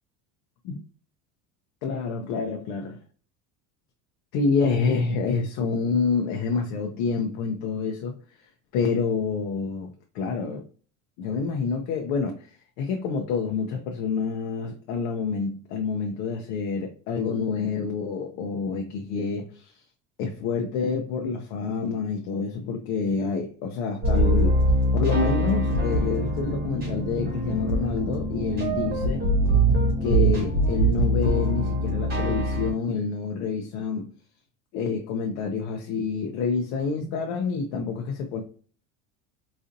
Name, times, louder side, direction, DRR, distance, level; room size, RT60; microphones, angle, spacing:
voice 1, 1.8-3.0 4.3-8.2 8.7-10.7 11.2-12.5 12.8-19.8 20.2-24.6 24.9-29.3 30.0-34.1 34.7-38.4, left 5 dB, 60° left, 0.5 m, -28 dB
sound 1, 24.0-32.7, right 1 dB, 25° right, 1.0 m, -23 dB
4.0 x 2.6 x 2.6 m
cardioid pair, 170°, 37 cm